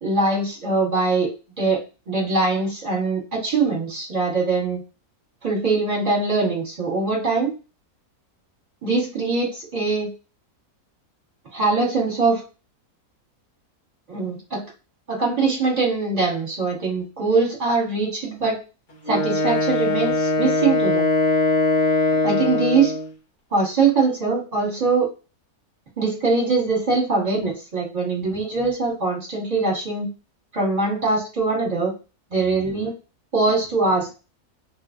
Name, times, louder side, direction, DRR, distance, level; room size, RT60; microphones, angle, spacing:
voice 1, 0.0-1.3 1.6-4.8 5.4-7.5 8.8-10.1 11.5-12.4 14.1-14.6 15.1-18.6 19.1-21.1 22.2-22.9 23.5-25.1 26.0-30.1 30.5-31.9 32.3-32.9 33.3-34.2, right 3 dB, 25° right, -3 dB, 1.5 m, -22 dB
Wind instrument woodwind instrument, 19.1-23.1, left 2 dB, 40° left, 0.8 m, -21 dB
2.9 x 2.5 x 2.4 m, 0.31 s
omnidirectional pair, 1.6 m